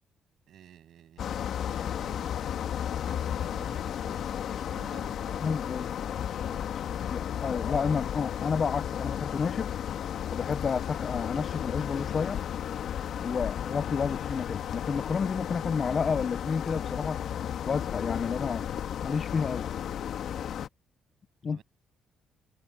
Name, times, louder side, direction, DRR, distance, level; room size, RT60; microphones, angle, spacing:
voice 1, 0.5-1.4 1.7-4.4 4.7-5.6 6.4-7.0 20.1-20.3 21.5-21.6, right 10 dB, 70° right, 7.7 m, -53 dB
sound 1, 1.2-20.7, left 9 dB, 70° left, 1.6 m, -33 dB
voice 2, 5.4-5.9 7.1-9.7 10.3-12.4 13.2-17.2 17.7-18.7 19.0-19.7 21.4-21.6, left 5 dB, 45° left, 0.7 m, -30 dB
cardioid pair, 90°, 0 cm